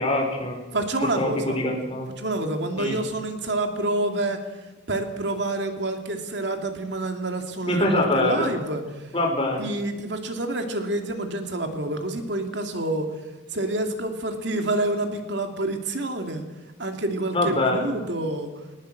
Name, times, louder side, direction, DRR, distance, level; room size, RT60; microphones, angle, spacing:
voice 1, 0.0-0.6 1.2-2.1 2.8-3.0 7.7-8.5 9.1-9.7 17.3-17.9, left 1 dB, 30° left, 1 dB, 5.2 m, -24 dB
voice 2, 0.7-1.6 2.2-4.4 4.9-9.0 9.6-13.1 13.5-16.4 16.8-18.5, right 2 dB, 65° right, 5 dB, 2.7 m, -28 dB
21.0 x 19.5 x 7.9 m, 1.2 s
head